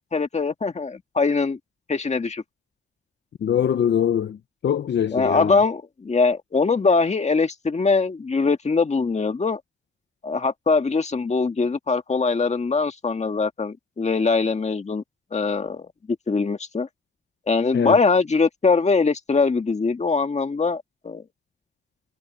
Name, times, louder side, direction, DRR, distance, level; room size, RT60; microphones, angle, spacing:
voice 1, 0.0-1.6 1.9-2.4 5.1-9.6 10.2-15.0 15.3-16.9 17.5-21.2, left 4 dB, 40° left, 1.8 m, -22 dB
voice 2, 3.4-4.4 4.6-5.6 17.7-18.0, left 9 dB, 75° left, 0.8 m, -22 dB
cardioid pair, 85°, 18 cm